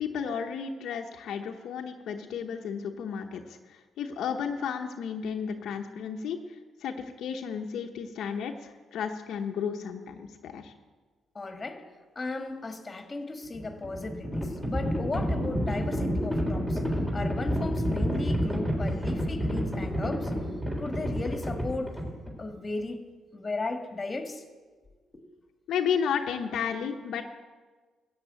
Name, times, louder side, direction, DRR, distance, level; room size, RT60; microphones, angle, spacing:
voice 1, 0.0-10.7 25.7-27.2, left 7 dB, 75° left, 3 dB, 0.9 m, -33 dB
voice 2, 11.4-11.8 12.2-16.8 17.1-20.3 20.8-21.9 22.4-23.0 23.3-24.4, left 2 dB, 25° left, 5 dB, 1.9 m, -35 dB
Livestock farm animals working animals, 13.4-22.5, equal, 15° right, 3.7 m, -29 dB
14.0 x 7.9 x 9.0 m, 1.4 s
cardioid pair, 90°, 0 cm